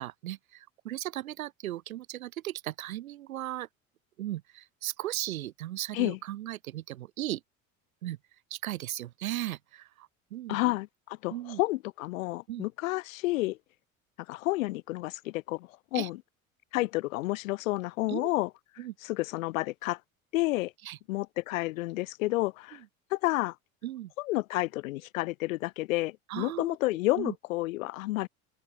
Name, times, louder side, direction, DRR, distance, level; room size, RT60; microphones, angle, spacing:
voice 1, 0.0-3.7 4.2-7.4 8.0-8.2 8.5-10.6 11.3-11.6 12.5-12.6 15.9-16.1 18.1-18.3 18.8-18.9 20.8-21.0 23.8-24.1 26.3-26.8 27.2-27.3, right 14 dB, 75° right, 1.3 m, -36 dB
voice 2, 10.5-13.6 14.3-16.2 16.7-18.5 19.0-20.0 20.3-20.7 21.1-22.8 23.1-23.5 24.2-28.3, left 19 dB, 75° left, 0.5 m, -30 dB
open air
hypercardioid pair, 70°, 41 cm